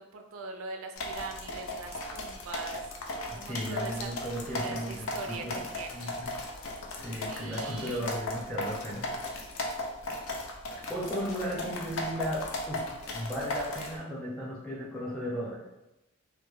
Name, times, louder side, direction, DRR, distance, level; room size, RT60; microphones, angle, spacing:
voice 1, 0.1-2.9 3.4-6.1 7.3-8.1 11.2-11.3, right 3 dB, 80° right, 3 dB, 0.3 m, -42 dB
sound 1, 1.0-14.0, left 1 dB, 75° left, 0.4 m, -36 dB
voice 2, 3.3-5.6 5.9-6.3 7.0-9.1 10.9-15.6, equal, 5° left, -7 dB, 0.7 m, -36 dB
2.2 x 2.0 x 3.0 m, 0.95 s
head